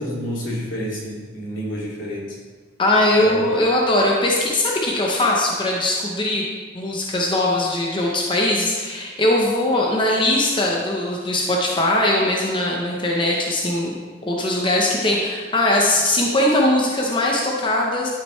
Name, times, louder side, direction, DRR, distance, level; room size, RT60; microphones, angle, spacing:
voice 1, 0.0-2.4 3.2-3.6, equal, 85° left, -5 dB, 2.6 m, -29 dB
voice 2, 2.8-6.4 6.7-13.9 14.2-18.1, left 1 dB, 25° left, -2 dB, 0.8 m, -20 dB
12.0 x 5.9 x 3.2 m, 1.4 s
head